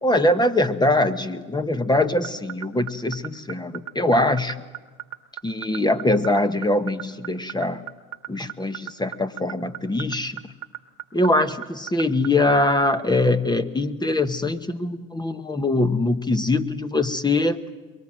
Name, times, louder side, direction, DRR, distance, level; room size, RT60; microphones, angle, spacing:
voice 1, 0.0-4.6 5.4-7.8 8.3-10.4 11.1-17.6, left 2 dB, 10° left, 11 dB, 1.0 m, -22 dB
sound 1, 2.0-12.5, right 17 dB, 85° right, 1.5 m, -33 dB
23.5 x 23.0 x 7.5 m, 1.3 s
hypercardioid pair, 95°, 41 cm